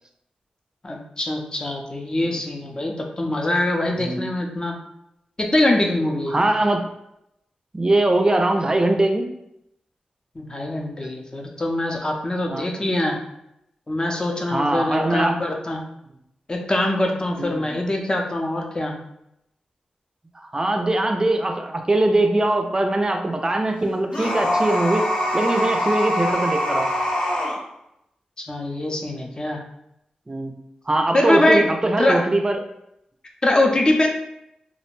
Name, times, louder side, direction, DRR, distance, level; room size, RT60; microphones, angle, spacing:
voice 1, 0.8-4.8 5.4-6.4 10.4-13.2 13.9-15.8 16.5-18.9 28.4-29.6 31.1-31.7 32.0-32.2 33.4-34.1, left 1 dB, 30° left, 1 dB, 0.5 m, -23 dB
voice 2, 6.3-6.8 7.7-9.3 12.5-12.7 14.5-15.4 17.4-17.7 20.3-25.1 25.3-26.9 30.3-30.5 30.9-32.6, right 2 dB, 25° right, 5 dB, 0.4 m, -21 dB
sound 1, 24.1-27.6, equal, 50° left, 0.9 m, -23 dB
2.4 x 2.1 x 3.1 m, 0.81 s
cardioid pair, 55°, 3 cm